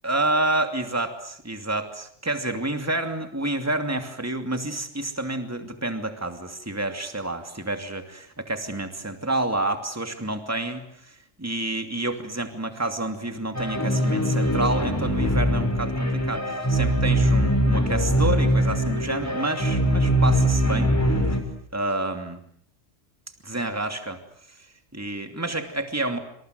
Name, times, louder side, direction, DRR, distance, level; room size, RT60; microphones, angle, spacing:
voice 1, 0.0-20.9 21.7-22.4 23.4-24.2 24.9-26.2, right 2 dB, 10° right, 6 dB, 2.8 m, -29 dB
sound 1, 13.5-21.4, equal, 10° left, 5.6 m, -22 dB
27.5 x 27.0 x 7.9 m, 0.66 s
omnidirectional pair, 1.3 m